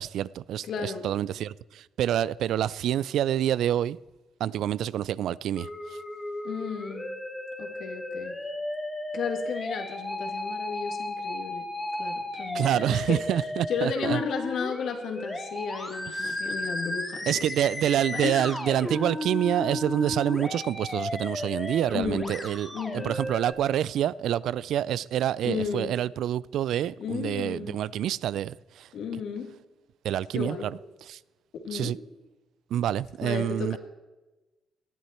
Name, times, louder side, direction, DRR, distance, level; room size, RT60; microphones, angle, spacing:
voice 1, 0.0-4.0 4.4-6.0 12.5-14.2 16.2-16.3 17.3-28.9 30.0-30.8 31.1-31.2 31.7-32.0 32.7-33.8, right 11 dB, 75° right, 0.3 m, -27 dB
voice 2, 0.6-1.0 6.4-7.1 7.6-8.4 9.1-11.7 12.0-13.2 13.7-17.5 18.1-18.5 21.9-22.4 22.7-23.2 25.4-25.9 27.0-27.8 28.9-29.5 30.3-30.7 31.5-31.9 33.2-33.8, left 6 dB, 70° left, 2.2 m, -33 dB
Musical instrument, 5.6-23.5, left 1 dB, 20° left, 2.7 m, -34 dB
18.0 x 11.5 x 4.4 m
cardioid pair, 90°, 0 cm